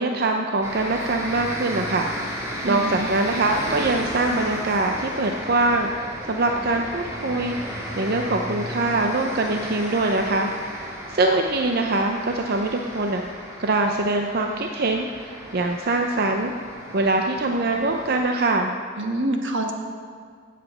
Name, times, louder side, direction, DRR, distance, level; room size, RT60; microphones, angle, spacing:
voice 1, 0.0-7.6 8.0-10.5 11.1-13.2 13.6-16.5 16.9-18.7, right 2 dB, 55° right, 3 dB, 0.6 m, -23 dB
sound 1, 0.6-18.2, equal, 15° right, 2.2 m, -34 dB
voice 2, 2.6-3.1 19.0-19.7, right 1 dB, 80° right, 3 dB, 1.5 m, -26 dB
16.0 x 7.5 x 5.8 m, 2.1 s
head